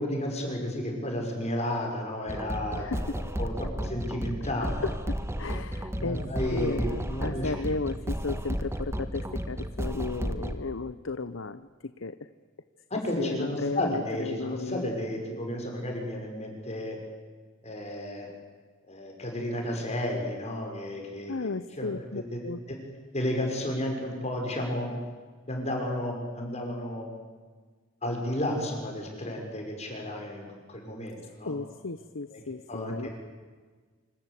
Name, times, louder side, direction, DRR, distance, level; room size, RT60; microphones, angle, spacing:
voice 1, 0.0-2.9 3.4-4.9 5.9-7.5 12.9-17.0 17.6-18.3 18.9-21.3 21.8-21.9 22.3-22.4 22.7-22.8 23.1-24.9 25.5-27.2 28.0-31.5 32.3-32.4 32.7-33.1, left 1 dB, 35° left, 1 dB, 6.0 m, -32 dB
sound 1, 2.3-10.5, equal, 15° right, 1.5 m, -33 dB
voice 2, 2.7-3.2 4.8-12.3 13.2-14.9 21.3-22.6 31.4-33.1, left 3 dB, 70° left, 12 dB, 0.9 m, -34 dB
26.0 x 25.5 x 8.4 m, 1.5 s
head